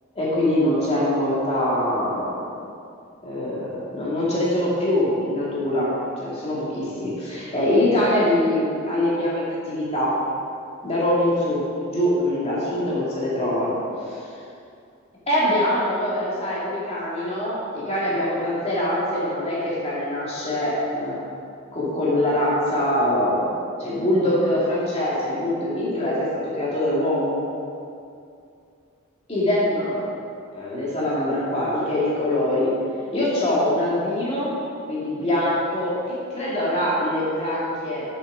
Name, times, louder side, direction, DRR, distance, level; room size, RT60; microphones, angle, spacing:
voice 1, 0.1-2.5 3.2-5.9 6.2-10.1 10.8-13.8 14.0-14.2 15.3-21.2 21.7-23.5 23.8-27.4 29.3-30.1 30.5-32.7 33.1-34.5 34.9-38.1, left 1 dB, 30° left, -7 dB, 2.5 m, -23 dB
8.4 x 7.5 x 5.0 m, 2.5 s
head